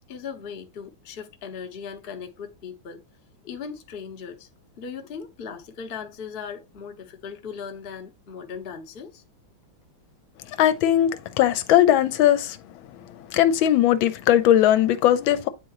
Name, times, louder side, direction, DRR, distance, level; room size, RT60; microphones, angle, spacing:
voice 1, 0.1-3.0 3.4-4.5 4.8-9.2, left 6 dB, 45° left, 0.8 m, -38 dB
voice 2, 10.6-12.6 13.3-15.5, left 11 dB, 80° left, 1.4 m, -19 dB
9.1 x 3.7 x 2.9 m
omnidirectional pair, 2.2 m